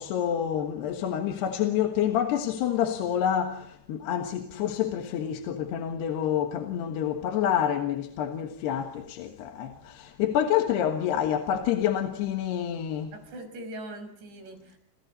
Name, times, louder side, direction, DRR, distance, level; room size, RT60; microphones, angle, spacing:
voice 1, 0.0-13.1, left 10 dB, 75° left, 3.5 m, -28 dB
voice 2, 13.1-14.8, right 1 dB, 85° right, 7.7 m, -41 dB
30.0 x 27.5 x 4.2 m
omnidirectional pair, 4.9 m